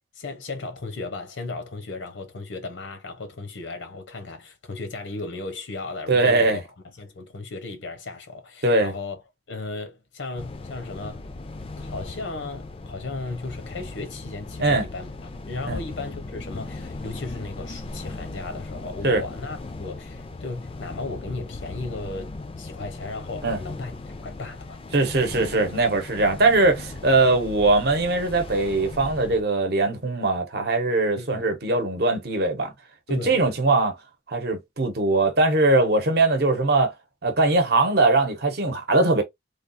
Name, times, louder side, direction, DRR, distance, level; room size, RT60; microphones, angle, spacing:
voice 1, 0.1-6.6 7.0-9.2 9.5-11.2 11.8-15.1 15.5-24.8 31.2-31.5 33.1-33.5, left 3 dB, 85° left, 0.8 m, -35 dB
voice 2, 6.1-6.6 8.6-8.9 14.6-14.9 15.6-15.8 19.0-19.2 23.4-23.6 24.9-32.7 33.1-33.9 34.3-36.9 37.2-39.2, right 2 dB, 55° right, 0.8 m, -21 dB
sound 1, 10.4-29.4, left 2 dB, 30° left, 0.3 m, -38 dB
3.4 x 2.3 x 2.5 m
head